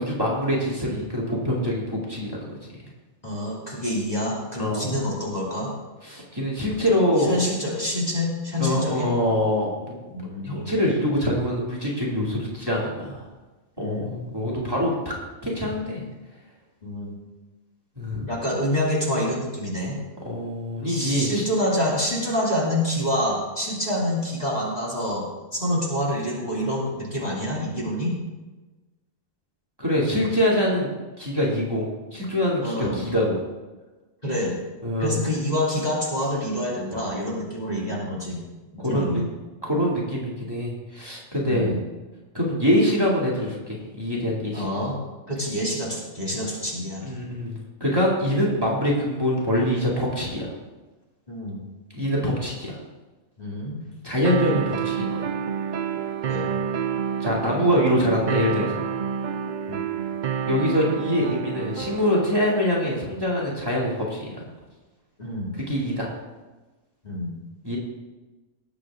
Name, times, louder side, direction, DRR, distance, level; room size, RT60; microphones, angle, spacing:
voice 1, 0.0-2.4 4.6-4.9 6.0-7.4 8.6-9.9 10.4-13.2 13.8-15.1 15.4-16.0 18.0-18.3 20.2-21.4 29.8-30.9 31.2-33.4 34.8-35.2 38.8-39.2 39.6-41.8 42.3-44.7 47.0-50.5 51.9-52.8 54.0-55.3 57.2-58.7 60.5-64.3 65.6-66.1 67.6-67.8, equal, 15° right, -5 dB, 2.6 m, -24 dB
voice 2, 3.2-5.7 7.3-9.2 10.1-10.7 13.8-14.2 16.8-17.1 18.3-20.0 20.9-25.3 25.5-28.2 32.6-33.1 34.2-34.5 35.0-38.4 38.7-39.3 41.4-41.8 44.5-45.0 45.3-47.2 51.3-51.6 53.4-53.8 56.3-56.5 59.7-59.8 65.2-65.5 67.0-67.3, left 1 dB, 30° left, -5 dB, 2.8 m, -27 dB
sound 1, 54.2-62.3, right 7 dB, 80° right, 0.4 m, -28 dB
19.0 x 8.0 x 3.7 m, 1.2 s
omnidirectional pair, 1.5 m